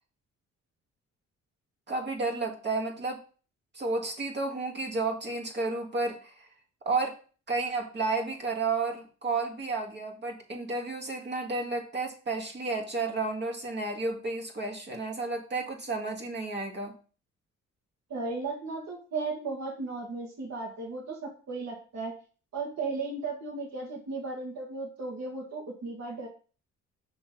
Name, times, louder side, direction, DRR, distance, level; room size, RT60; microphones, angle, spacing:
voice 1, 1.9-3.2 3.7-6.5 6.9-7.2 7.5-16.9, right 3 dB, 35° right, 2 dB, 2.0 m, -32 dB
voice 2, 18.1-22.1 22.5-26.3, right 3 dB, 60° right, -3 dB, 1.7 m, -35 dB
6.5 x 3.4 x 5.3 m, 0.38 s
cardioid pair, 90°, 30 cm